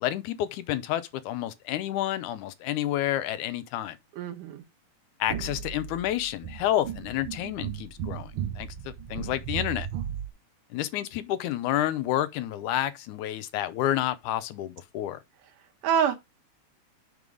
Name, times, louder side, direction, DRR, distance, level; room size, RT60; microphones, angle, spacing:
voice 1, 0.0-4.0 5.2-8.3 8.6-9.9 10.7-15.2, left 13 dB, 80° left, 2.2 m, -29 dB
voice 2, 4.1-4.6 15.8-16.1, right 8 dB, 85° right, 2.6 m, -25 dB
sound 1, 5.3-10.3, right 9 dB, 70° right, 1.3 m, -36 dB
5.9 x 5.4 x 4.8 m
omnidirectional pair, 3.5 m